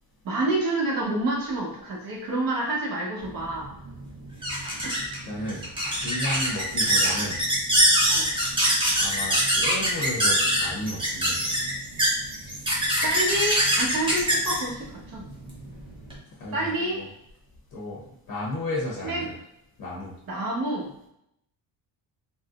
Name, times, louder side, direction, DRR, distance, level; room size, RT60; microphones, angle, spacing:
voice 1, 0.2-3.7 4.8-4.9 8.1-8.4 13.0-15.3 16.5-17.0 19.0-19.3 20.3-20.9, right 2 dB, 50° right, -3 dB, 1.1 m, -28 dB
sound 1, 3.3-16.2, equal, 10° right, 0.6 m, -24 dB
voice 2, 4.9-5.6 5.9-7.4 9.0-11.5 16.4-17.1 17.7-18.0 18.3-19.4 19.8-20.1, left 1 dB, 50° left, -4 dB, 0.8 m, -33 dB
3.8 x 2.1 x 2.4 m, 0.76 s
cardioid pair, 160°, 43 cm